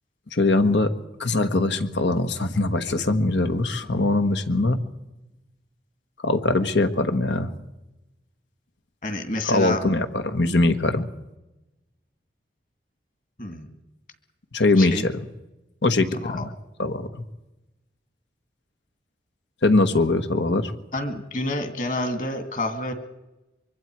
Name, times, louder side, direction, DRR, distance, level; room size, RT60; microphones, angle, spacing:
voice 1, 0.3-0.9 1.2-4.8 6.2-7.5 9.4-11.1 14.5-15.2 15.8-16.5 16.8-17.1 19.6-20.7, left 2 dB, 75° left, 8 dB, 1.4 m, -22 dB
voice 2, 9.0-9.8 13.4-13.7 14.8-15.0 16.2-16.4 20.9-22.9, left 1 dB, 45° left, 7 dB, 2.2 m, -28 dB
24.5 x 23.5 x 4.7 m, 1.0 s
head